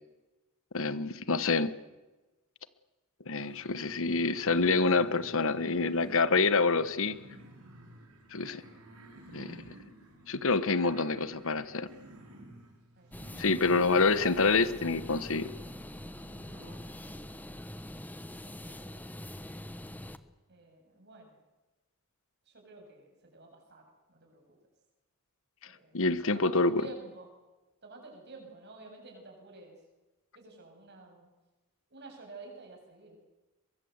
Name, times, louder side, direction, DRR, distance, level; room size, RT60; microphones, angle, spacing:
voice 1, 0.7-1.7 3.2-7.2 8.3-8.6 9.3-9.7 10.3-11.9 13.4-15.5 25.9-26.9, left 3 dB, 65° left, 14 dB, 1.2 m, -27 dB
sound 1, 3.3-16.8, right 1 dB, 80° right, 5.2 m, -53 dB
sound 2, 13.1-20.2, left 1 dB, 10° left, 1.0 m, -44 dB
voice 2, 16.9-17.2 18.3-19.0 20.5-21.3 22.5-23.1 23.3-24.5 25.6-27.3 27.8-29.7 30.3-31.3 31.9-33.2, right 3 dB, 50° right, 2 dB, 7.8 m, -51 dB
23.0 x 22.5 x 8.1 m, 1.1 s
head